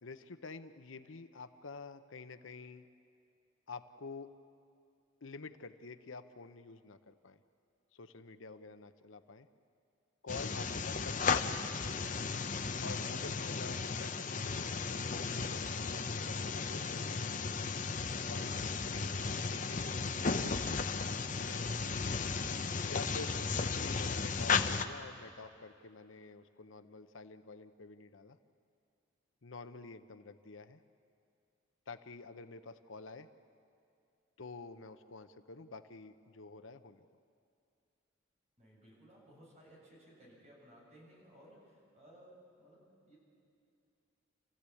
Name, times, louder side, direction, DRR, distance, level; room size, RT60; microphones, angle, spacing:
voice 1, 0.0-2.9 3.7-4.3 5.2-7.4 7.9-9.5 10.2-11.6 12.8-17.2 18.3-19.2 19.4-20.1 21.3-21.9 22.8-28.4 29.4-30.8 31.9-33.3 34.4-37.0, left 4 dB, 75° left, 10 dB, 0.8 m, -49 dB
sound 1, 10.3-24.8, left 4 dB, 40° left, 0.8 m, -35 dB
voice 2, 38.6-43.2, equal, 35° right, -4 dB, 7.2 m, -59 dB
28.0 x 15.5 x 8.5 m, 2.5 s
head